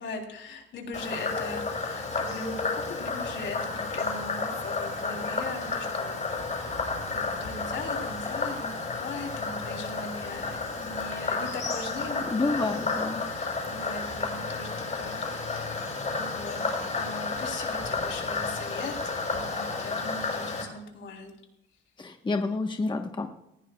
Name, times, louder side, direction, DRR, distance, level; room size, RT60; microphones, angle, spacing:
voice 1, 0.0-8.7 9.0-12.6 13.2-16.6 16.9-18.9 19.3-21.3, left 3 dB, 70° left, 2 dB, 3.4 m, -40 dB
Frog, 0.9-20.6, left 3 dB, 40° left, 5.6 m, -32 dB
voice 2, 12.3-13.2 22.0-23.3, left 3 dB, 25° left, 4 dB, 1.2 m, -29 dB
19.5 x 15.0 x 2.4 m, 0.83 s
cardioid pair, 90°, 20 cm